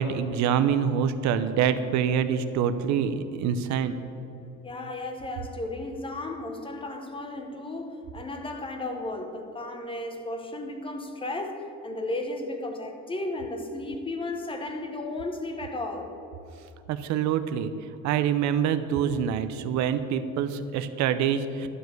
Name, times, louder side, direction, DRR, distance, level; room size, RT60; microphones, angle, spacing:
voice 1, 0.0-3.9 16.9-17.7 18.0-21.7, right 8 dB, 65° right, 0.6 m, -25 dB
voice 2, 4.6-16.2, left 2 dB, 15° left, 0.9 m, -34 dB
11.5 x 5.1 x 7.8 m
cardioid pair, 145°, 31 cm